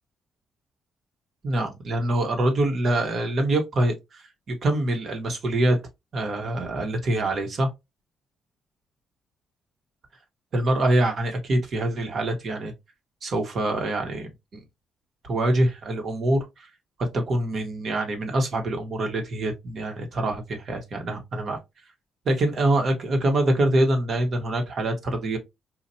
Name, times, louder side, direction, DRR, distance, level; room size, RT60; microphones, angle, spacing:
voice 1, 1.4-4.2 4.5-5.8 6.1-7.7 10.5-12.7 13.2-14.3 15.2-16.7 17.3-21.6 22.2-25.4, right 1 dB, 55° right, 1.1 m, -25 dB
4.3 x 2.5 x 2.6 m
cardioid pair, 90°, 0 cm